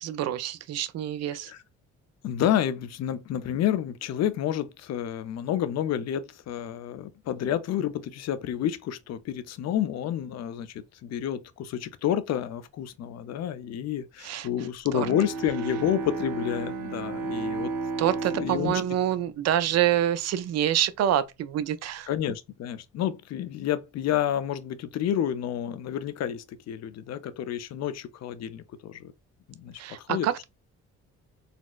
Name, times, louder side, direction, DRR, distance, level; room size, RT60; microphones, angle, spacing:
voice 1, 0.0-1.5 14.2-14.5 14.9-15.1 18.0-22.1 29.8-30.4, right 11 dB, 60° right, 0.5 m, -26 dB
voice 2, 2.2-17.7 18.3-18.8 22.1-29.1 29.5-30.4, left 10 dB, 60° left, 0.5 m, -29 dB
Bowed string instrument, 15.0-20.2, right 4 dB, 80° right, 1.4 m, -34 dB
4.1 x 2.0 x 2.3 m
cardioid pair, 90°, 30 cm